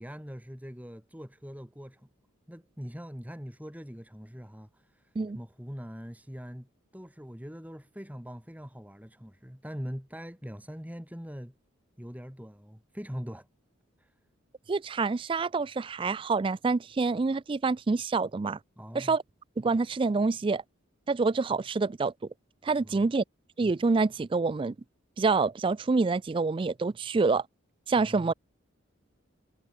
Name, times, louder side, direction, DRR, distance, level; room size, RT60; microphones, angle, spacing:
voice 1, 0.0-2.1 2.5-11.5 12.0-13.5 14.0-14.1 18.8-19.2 22.8-23.1 28.0-28.3, equal, 10° right, 3.0 m, -42 dB
voice 2, 14.7-18.6 18.9-19.2 19.6-20.6 21.1-22.1 22.6-23.2 23.6-24.7 25.2-27.4 27.9-28.3, right 4 dB, 25° right, 0.3 m, -27 dB
head